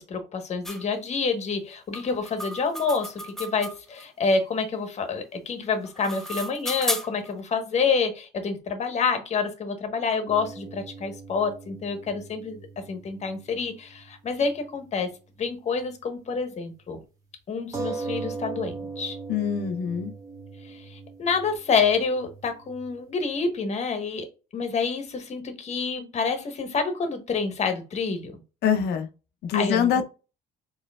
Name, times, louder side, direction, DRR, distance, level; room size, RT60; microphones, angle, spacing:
voice 1, 0.0-12.6 12.9-15.1 15.4-17.0 17.5-19.2 20.6-24.3 24.5-28.3 29.5-29.9, left 5 dB, 40° left, 1.1 m, -28 dB
sound 1, 0.6-0.8 1.9-4.0 5.7-7.3, equal, ahead, 0.5 m, -33 dB
sound 2, 10.3-14.1 14.4-14.5 17.7-22.9, right 4 dB, 20° right, 1.5 m, -39 dB
voice 2, 19.3-20.1 28.6-29.1 29.4-30.0, left 7 dB, 75° left, 0.7 m, -24 dB
4.4 x 3.2 x 2.3 m
cardioid pair, 110°, 17 cm